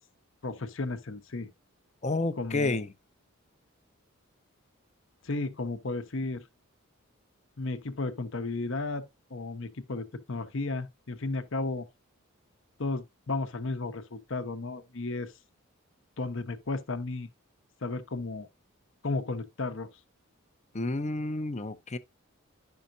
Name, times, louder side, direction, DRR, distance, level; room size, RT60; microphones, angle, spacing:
voice 1, 0.4-1.5 2.4-2.8 5.2-6.4 7.6-9.0 9.3-11.9 12.8-15.3 16.2-17.3 17.8-18.5 19.0-19.9, left 3 dB, 60° left, 0.9 m, -34 dB
voice 2, 2.0-2.9 20.7-22.0, left 2 dB, 30° left, 0.6 m, -30 dB
10.5 x 5.6 x 2.6 m
head